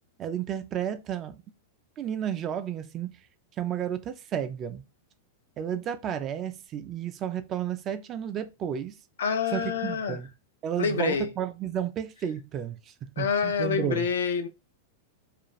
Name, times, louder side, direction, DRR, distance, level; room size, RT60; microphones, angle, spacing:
voice 1, 0.2-1.4 2.0-3.2 3.6-4.9 5.6-9.0 9.5-10.3 10.6-14.1, right 9 dB, 35° right, 0.4 m, -32 dB
voice 2, 9.2-10.2 10.8-11.3 13.2-14.5, left 6 dB, 85° left, 0.5 m, -27 dB
2.5 x 2.3 x 3.0 m
hypercardioid pair, 125°, 0 cm